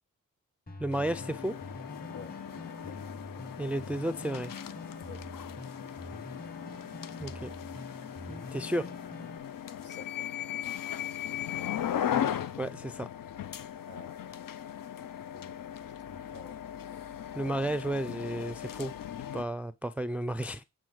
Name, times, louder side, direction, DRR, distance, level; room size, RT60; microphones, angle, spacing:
sound 1, 0.7-9.4, left 1 dB, 25° left, 1.3 m, -45 dB
voice 1, 0.8-1.6 3.6-4.5 7.2-7.5 8.3-8.9 12.6-13.1 17.4-18.9 19.3-20.6, right 1 dB, 5° right, 0.4 m, -33 dB
sound 2, 0.9-19.4, left 10 dB, 80° left, 0.6 m, -38 dB
voice 2, 9.8-10.3 13.9-14.4 15.2-16.6, left 4 dB, 45° left, 1.6 m, -50 dB
7.9 x 3.9 x 6.3 m
wide cardioid pair, 100°, 33 cm